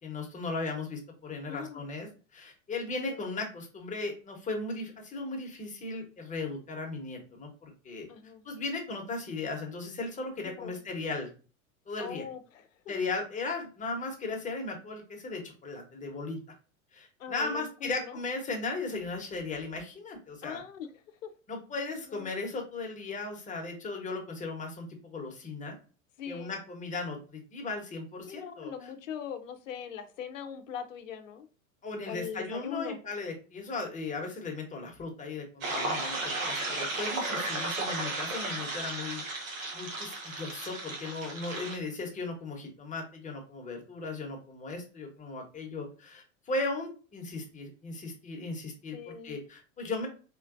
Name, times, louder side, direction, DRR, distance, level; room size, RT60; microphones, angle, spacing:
voice 1, 0.0-8.1 8.4-11.3 11.9-12.3 12.9-16.4 16.9-20.6 21.5-25.7 26.3-28.9 31.8-39.2 39.7-50.1, left 3 dB, 20° left, 2 dB, 1.2 m, -37 dB
voice 2, 1.5-1.8 3.1-3.2 8.1-8.4 10.4-10.8 12.0-12.6 17.2-18.2 20.4-20.9 21.2-21.3 22.1-22.3 26.2-26.6 28.3-31.5 32.1-33.0 48.9-49.4, left 8 dB, 65° left, 8 dB, 0.7 m, -41 dB
sound 1, 35.6-41.8, right 2 dB, 75° right, 1.3 m, -34 dB
4.7 x 3.1 x 2.5 m, 0.36 s
figure-of-eight pair, 85°, 41 cm